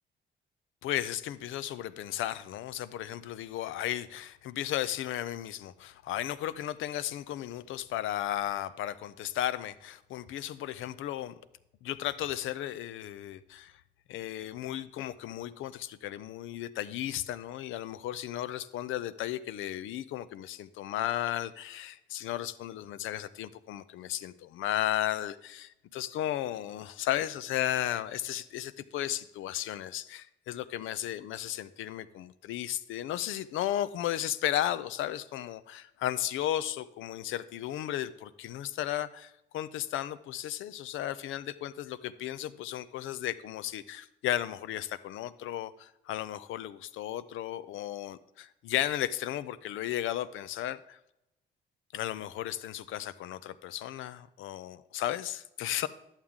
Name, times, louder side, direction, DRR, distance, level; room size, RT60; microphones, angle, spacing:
voice 1, 0.8-11.3 11.8-13.7 14.1-51.0 51.9-55.9, left 12 dB, 80° left, 15 dB, 0.5 m, -34 dB
11.0 x 7.3 x 3.6 m, 0.88 s
cardioid pair, 90°, 20 cm